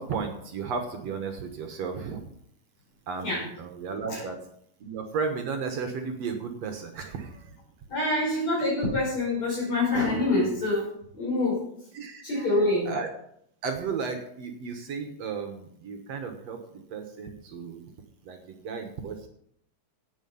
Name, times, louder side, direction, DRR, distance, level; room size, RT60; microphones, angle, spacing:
voice 1, 0.0-2.2 3.1-4.4 4.8-7.6 11.9-12.5 12.9-13.1 13.6-17.9 18.2-19.3, right 5 dB, 60° right, 5 dB, 1.8 m, -34 dB
voice 2, 7.9-11.6 12.2-12.9, left 2 dB, 45° left, -7 dB, 6.5 m, -26 dB
17.0 x 6.8 x 5.5 m, 0.70 s
omnidirectional pair, 4.4 m